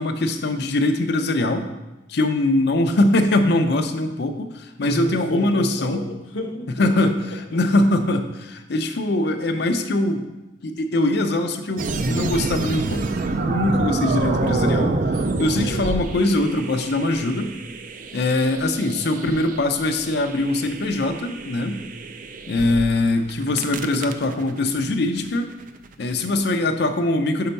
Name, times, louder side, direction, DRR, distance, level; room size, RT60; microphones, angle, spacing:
voice 1, 0.0-1.7 2.1-6.0 6.8-7.1 7.5-10.3 10.6-15.0 15.4-17.5 18.1-21.8 22.5-25.5 26.0-27.5, left 2 dB, 55° left, 6 dB, 0.6 m, -22 dB
voice 2, 4.8-7.6 15.6-15.9 23.7-24.0, left 2 dB, 85° left, 4 dB, 0.9 m, -32 dB
sound 1, 11.8-22.9 23.3-26.2, right 3 dB, 45° right, 0.4 m, -27 dB
5.6 x 4.4 x 5.3 m, 1.0 s
head